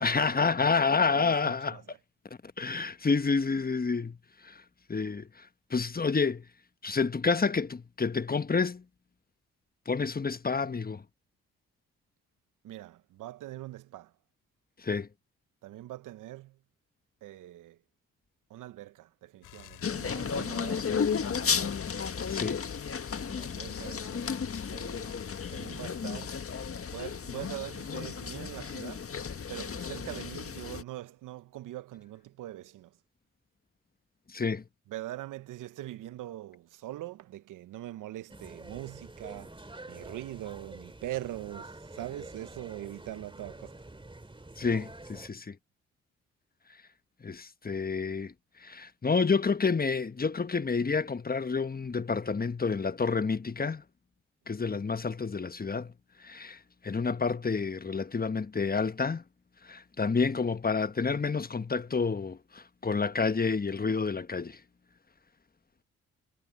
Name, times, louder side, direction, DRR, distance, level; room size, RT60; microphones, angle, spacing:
voice 1, 0.0-1.8 2.4-4.2 4.4-4.6 4.9-6.5 6.8-8.8 9.8-11.0 14.8-15.1 22.3-22.6 34.3-34.6 44.6-45.6 47.2-53.8 54.5-55.9 56.2-59.2 59.6-64.6, left 4 dB, 30° left, 1.3 m, -29 dB
voice 2, 1.1-2.0 12.6-14.1 15.6-16.6 17.2-17.8 18.5-21.7 23.3-24.4 24.7-25.2 25.5-26.4 26.9-29.1 29.5-33.0 34.9-39.6 39.9-43.8, right 15 dB, 75° right, 1.0 m, -42 dB
sound 1, 19.4-26.8, left 14 dB, 80° left, 6.0 m, -53 dB
sound 2, 19.8-30.8, left 6 dB, 45° left, 1.7 m, -33 dB
sound 3, 38.3-45.3, right 2 dB, 15° right, 2.8 m, -47 dB
hypercardioid pair, 45°, 31 cm